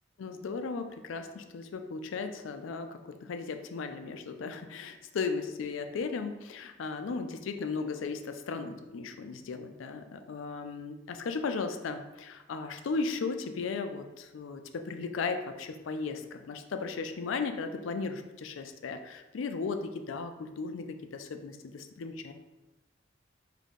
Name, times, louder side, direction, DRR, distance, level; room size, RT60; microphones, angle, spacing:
voice 1, 0.2-22.3, left 4 dB, 80° left, 7 dB, 0.4 m, -36 dB
3.7 x 2.7 x 3.6 m, 1.0 s
head